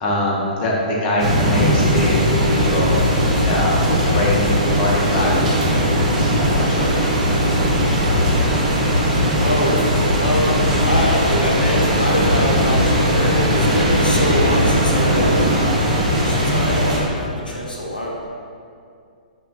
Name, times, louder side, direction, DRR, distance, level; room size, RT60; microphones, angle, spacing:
voice 1, 0.0-4.5 4.7-5.4 5.7-7.2, left 1 dB, 25° left, -4 dB, 0.4 m, -23 dB
sound 1, 1.2-17.0, equal, 55° right, 0.6 m, -18 dB
sound 2, 4.8-15.5, equal, 90° right, 0.4 m, -28 dB
voice 2, 9.4-9.8 10.1-18.2, left 1 dB, 85° left, -3 dB, 0.4 m, -24 dB
3.0 x 2.1 x 2.3 m, 2.3 s
figure-of-eight pair, 115°, 5 cm